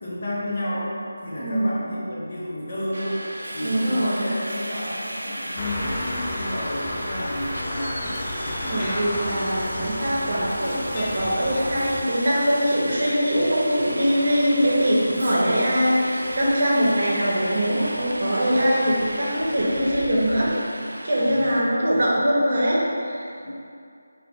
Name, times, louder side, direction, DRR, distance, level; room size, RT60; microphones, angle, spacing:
voice 1, 0.0-3.2 3.5-8.1 16.8-16.9 21.2-21.7 23.4-23.5, left 1 dB, 50° left, -6 dB, 0.9 m, -31 dB
voice 2, 1.4-1.9 3.6-4.3 8.6-20.5 21.0-23.2, equal, 50° right, -6 dB, 0.9 m, -22 dB
Subway metro underground, 2.9-21.6, right 1 dB, 90° right, 0.4 m, -34 dB
sound 1, 5.6-12.0, left 1 dB, 20° left, 0.4 m, -32 dB
3.6 x 2.5 x 3.6 m, 2.5 s
figure-of-eight pair, 165°, 0 cm